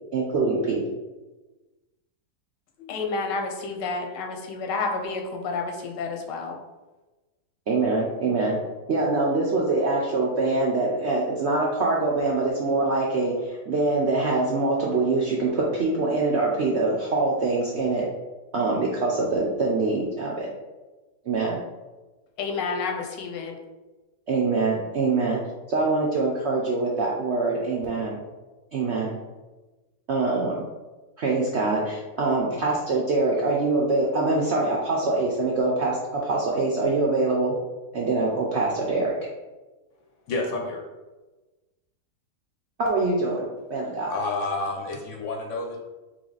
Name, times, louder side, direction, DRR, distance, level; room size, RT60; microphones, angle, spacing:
voice 1, 0.1-0.8 7.7-8.6 8.9-18.1 18.5-20.5 21.2-21.6 24.3-25.4 25.7-28.2 28.7-29.2 30.1-30.7 31.2-37.5 37.9-39.1 42.8-44.1, right 3 dB, 70° right, -3 dB, 0.6 m, -24 dB
voice 2, 2.8-6.6 22.4-23.5, left 4 dB, 90° left, 3 dB, 1.3 m, -30 dB
voice 3, 40.3-40.8 44.1-45.8, left 3 dB, 60° left, 1 dB, 0.8 m, -29 dB
3.8 x 3.2 x 3.9 m, 1.2 s
omnidirectional pair, 1.8 m